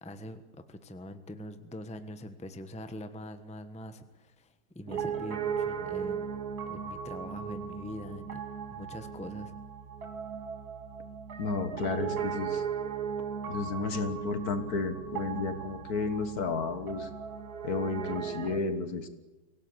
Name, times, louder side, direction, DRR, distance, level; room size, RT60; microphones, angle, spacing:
voice 1, 0.0-6.4 6.7-8.4 8.7-9.5, left 1 dB, 5° left, 9 dB, 1.0 m, -43 dB
Piano, 4.9-18.6, right 7 dB, 60° right, 2.1 m, -37 dB
voice 2, 11.4-12.6 13.5-17.1 17.6-19.1, left 4 dB, 60° left, 10 dB, 1.9 m, -32 dB
25.0 x 17.5 x 8.1 m, 1.1 s
omnidirectional pair, 1.9 m